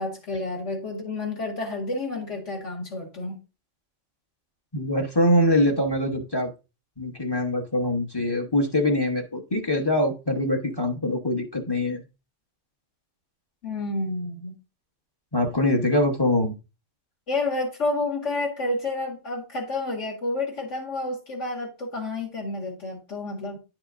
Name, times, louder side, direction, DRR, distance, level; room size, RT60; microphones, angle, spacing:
voice 1, 0.0-3.4 13.6-14.6 17.3-23.6, left 2 dB, 55° left, 2.3 m, -30 dB
voice 2, 4.7-6.5 7.0-12.0 15.3-16.5, left 1 dB, 20° left, 0.9 m, -23 dB
10.0 x 6.0 x 2.5 m
omnidirectional pair, 1.5 m